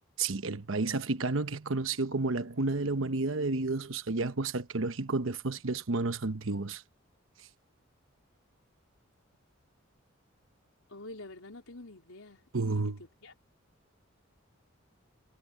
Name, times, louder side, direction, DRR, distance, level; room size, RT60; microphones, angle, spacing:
voice 1, 0.2-6.8 12.5-13.0, right 3 dB, 75° right, 1.0 m, -31 dB
voice 2, 10.9-13.3, left 2 dB, 85° left, 4.1 m, -48 dB
head